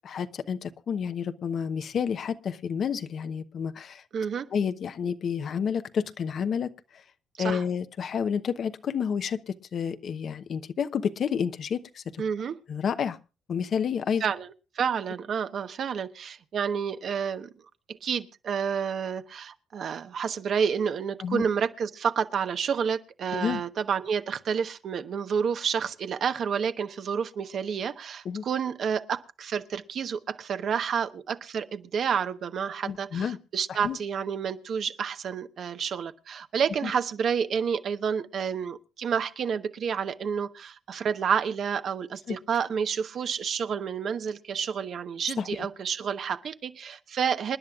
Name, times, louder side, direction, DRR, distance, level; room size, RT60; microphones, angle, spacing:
voice 1, 0.0-4.0 4.5-7.0 7.4-12.2 12.7-13.2 13.5-14.2 21.2-21.4 23.3-23.6 28.2-28.4 32.9-33.4 33.7-34.0 36.8-36.9 42.3-42.4 45.4-45.5, left 7 dB, 60° left, 0.9 m, -30 dB
voice 2, 4.1-4.5 7.4-7.6 12.2-12.6 14.2-17.5 17.9-47.6, right 7 dB, 60° right, 1.1 m, -29 dB
27.5 x 10.5 x 2.4 m
cardioid pair, 90°, 0 cm